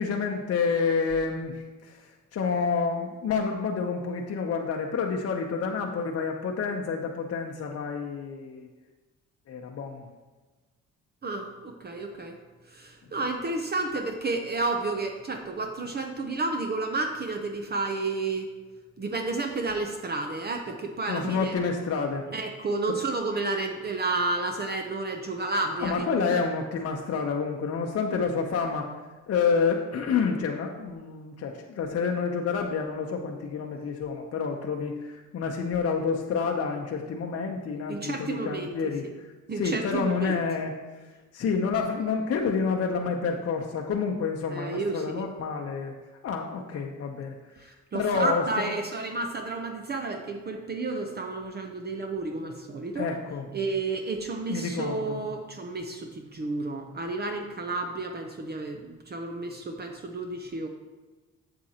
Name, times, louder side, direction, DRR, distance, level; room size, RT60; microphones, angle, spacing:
voice 1, 0.0-8.7 9.5-10.1 21.1-22.3 22.9-23.0 25.8-28.9 29.3-39.3 39.6-40.7 41.0-45.9 46.2-47.3 47.9-48.7 52.9-53.5 54.5-55.2, left 5 dB, 50° left, 1 dB, 0.7 m, -29 dB
voice 2, 11.2-12.4 12.7-18.5 19.0-21.5 22.3-26.3 37.9-38.7 39.5-40.3 44.5-45.0 47.6-53.1 53.5-60.7, right 3 dB, 35° right, 4 dB, 0.7 m, -31 dB
7.6 x 7.2 x 2.8 m, 1.2 s
cardioid pair, 90°, 30 cm